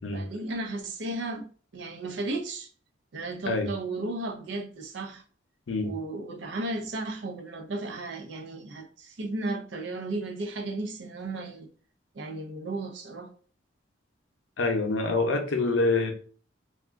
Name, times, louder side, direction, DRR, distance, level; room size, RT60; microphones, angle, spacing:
voice 1, 0.1-1.5 1.7-2.7 3.1-5.2 5.8-11.7 12.1-13.3, right 2 dB, 65° right, 0.5 m, -34 dB
voice 2, 14.6-16.1, left 3 dB, 85° left, 0.6 m, -26 dB
2.4 x 2.3 x 3.5 m
head